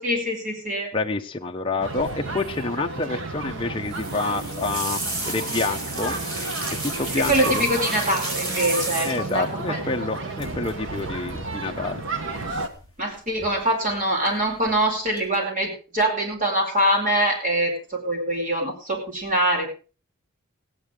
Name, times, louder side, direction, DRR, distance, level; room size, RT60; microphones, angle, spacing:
voice 1, 0.0-0.9 7.2-9.8 13.0-19.7, right 1 dB, 35° right, 0 dB, 4.8 m, -24 dB
voice 2, 0.9-6.2 6.8-7.7 9.0-12.0, left 3 dB, 25° left, 2 dB, 0.9 m, -28 dB
sound 1, 1.8-12.7, right 2 dB, 60° right, 1.4 m, -32 dB
sound 2, 3.9-9.4 10.4-10.7 11.0-11.3 12.5-13.0 13.4-13.9 14.4-14.8 15.2-15.3, right 2 dB, 85° right, 5.0 m, -32 dB
16.5 x 9.5 x 5.0 m, 0.36 s
head